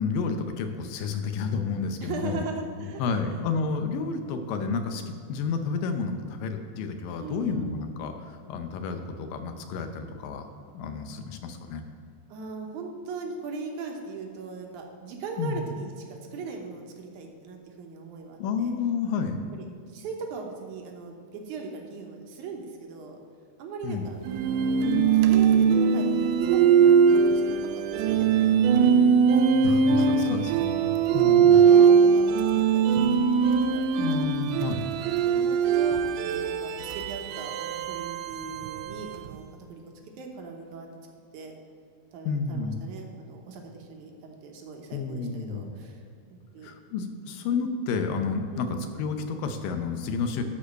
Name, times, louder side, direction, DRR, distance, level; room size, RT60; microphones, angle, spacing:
voice 1, 0.0-2.4 2.8-10.5 10.7-11.8 15.4-15.7 18.4-19.4 23.8-24.1 29.6-31.6 34.0-34.8 42.3-42.8 44.9-45.7 46.6-50.4, left 5 dB, 80° left, 6 dB, 2.4 m, -30 dB
voice 2, 2.0-3.2 7.2-7.7 12.3-18.7 19.5-23.2 23.6-24.8 25.2-29.0 29.7-32.3 32.7-33.8 34.6-39.4 39.7-39.8 40.2-40.9 41.3-41.5 42.1-46.0 46.3-46.7 48.5-48.8 50.4-50.5, right 4 dB, 70° right, 2 dB, 2.2 m, -40 dB
sound 1, 24.2-39.3, right 6 dB, 85° right, 1.8 m, -21 dB
11.5 x 4.9 x 6.3 m, 2.3 s
omnidirectional pair, 4.1 m